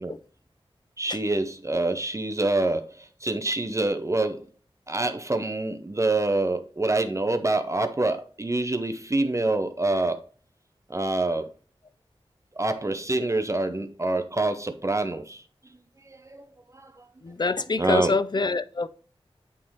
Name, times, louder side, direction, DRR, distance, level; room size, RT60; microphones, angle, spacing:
voice 1, 1.0-4.4 4.9-10.2 10.9-11.5 12.6-15.4 16.1-16.5 16.7-17.0 17.8-18.2, right 2 dB, 30° right, 0.6 m, -26 dB
voice 2, 17.2-18.9, left 3 dB, 45° left, 0.5 m, -26 dB
8.4 x 3.6 x 3.1 m
wide cardioid pair, 60°, 11 cm